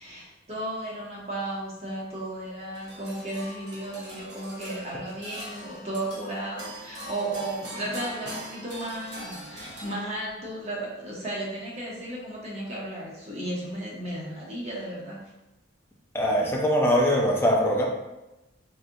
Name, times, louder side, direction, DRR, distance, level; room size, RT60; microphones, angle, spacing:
voice 1, 0.0-15.2, right 1 dB, 35° right, -5 dB, 0.8 m, -34 dB
sound 1, 2.7-10.4, right 1 dB, 60° right, 0.8 m, -42 dB
voice 2, 16.1-17.9, equal, 10° left, -1 dB, 0.4 m, -22 dB
3.2 x 2.8 x 2.5 m, 0.99 s
head